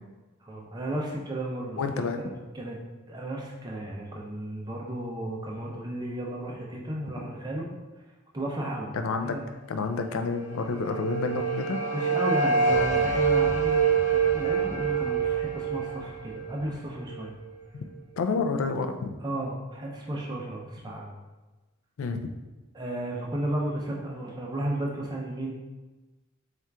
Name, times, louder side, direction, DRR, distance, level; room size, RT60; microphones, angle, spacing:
voice 1, 0.4-2.8 3.1-7.7 8.3-8.9 9.2-9.4 11.9-17.3 19.2-21.1 22.7-25.5, right 1 dB, 20° right, -2 dB, 0.5 m, -34 dB
voice 2, 1.8-2.2 8.9-9.4 9.7-11.8 17.7-17.8 18.2-19.2 22.0-22.3, left 4 dB, 70° left, 6 dB, 0.4 m, -29 dB
sound 1, 10.4-17.5, right 5 dB, 35° left, 0.7 m, -26 dB
4.3 x 2.4 x 3.4 m, 1.2 s
head